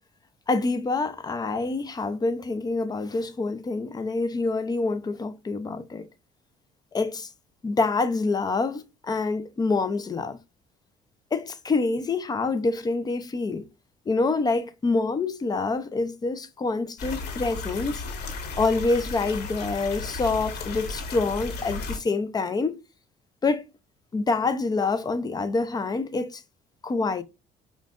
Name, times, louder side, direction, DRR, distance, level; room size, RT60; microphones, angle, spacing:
voice 1, 0.5-6.1 6.9-7.3 7.6-10.4 11.3-13.7 14.1-18.0 18.6-22.8 23.4-23.6 24.1-26.4 26.8-27.2, left 3 dB, 25° left, 0.6 m, -26 dB
sound 1, 17.0-22.0, left 3 dB, 80° left, 1.5 m, -34 dB
5.4 x 2.5 x 2.4 m
cardioid pair, 110°, 17 cm